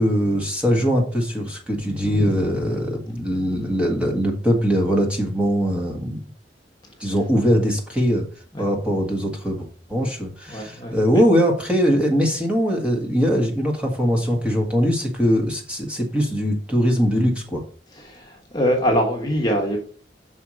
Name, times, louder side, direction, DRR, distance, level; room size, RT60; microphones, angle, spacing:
voice 1, 0.0-6.2 7.0-8.3 8.6-17.6, equal, 5° right, 0 dB, 1.6 m, -21 dB
voice 2, 2.0-2.4 7.0-7.1 8.5-8.6 10.5-11.2 17.9-19.8, equal, 25° left, 1 dB, 1.3 m, -24 dB
5.8 x 4.4 x 6.2 m, 0.43 s
head